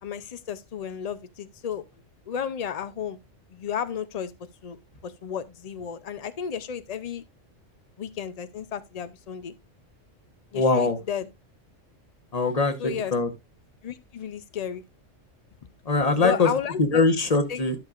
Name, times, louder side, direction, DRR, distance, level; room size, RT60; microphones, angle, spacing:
voice 1, 0.0-1.8 2.3-3.2 3.5-4.3 4.6-4.8 5.0-7.2 8.0-9.5 10.5-11.3 12.8-13.1 13.8-14.8 16.2-17.0 17.5-17.6, left 8 dB, 60° left, 0.4 m, -33 dB
voice 2, 10.5-11.0 12.3-12.8 13.1-13.3 15.9-16.5 16.8-17.7, left 3 dB, 30° left, 1.1 m, -21 dB
12.5 x 6.6 x 2.4 m
omnidirectional pair, 1.3 m